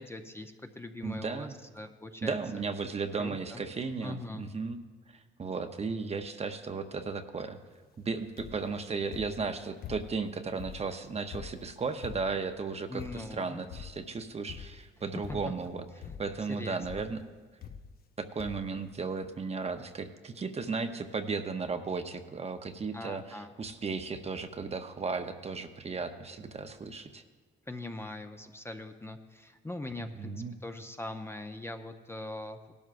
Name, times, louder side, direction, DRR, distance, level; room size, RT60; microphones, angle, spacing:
voice 1, 0.0-1.5 1.8-2.4 3.2-3.6 4.0-4.4 12.9-13.6 15.3-15.4 16.0-16.1 16.5-17.0 22.9-23.5 27.7-30.3 30.6-32.7, left 2 dB, 10° left, 6 dB, 0.6 m, -41 dB
voice 2, 1.0-1.6 2.2-4.8 5.1-7.6 8.0-15.9 16.2-17.2 18.2-27.2 30.0-30.6, right 4 dB, 30° right, 8 dB, 0.8 m, -35 dB
sound 1, 8.4-8.7 9.1-10.3 10.6-12.5 13.0-13.4 13.7-14.1 14.5-14.9 15.2-15.7 16.0-16.4 16.8-17.1 17.6-18.1 18.4-18.8 19.5-19.6 19.8-19.9, left 8 dB, 50° left, 0.7 m, -45 dB
18.0 x 12.0 x 2.5 m, 1.5 s
cardioid pair, 90°, 20 cm